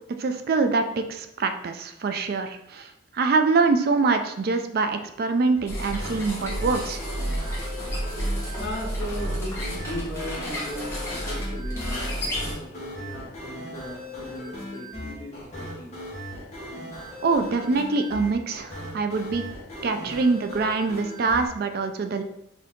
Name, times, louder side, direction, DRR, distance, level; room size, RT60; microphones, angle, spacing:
voice 1, 0.2-7.0 17.2-19.4 19.8-22.2, right 4 dB, 55° right, 7 dB, 0.4 m, -24 dB
sound 1, 5.6-21.5, left 1 dB, 35° left, 1.4 m, -38 dB
sound 2, 5.7-12.5, equal, 15° left, 1.2 m, -31 dB
voice 2, 8.5-15.9 20.0-20.2, left 1 dB, 60° left, -3 dB, 1.5 m, -37 dB
4.3 x 2.7 x 3.7 m, 0.81 s
head